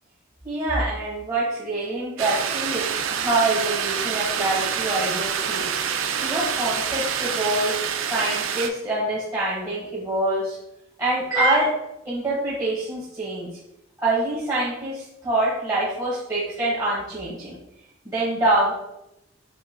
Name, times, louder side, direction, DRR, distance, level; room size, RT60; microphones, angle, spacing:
voice 1, 0.4-5.7 6.2-10.6 11.0-11.8 12.0-13.5 14.0-17.6 18.0-18.7, right 2 dB, 20° right, -8 dB, 1.2 m, -25 dB
sound 1, 2.2-8.7, right 7 dB, 70° right, 0.4 m, -27 dB
6.8 x 2.4 x 2.2 m, 0.84 s
head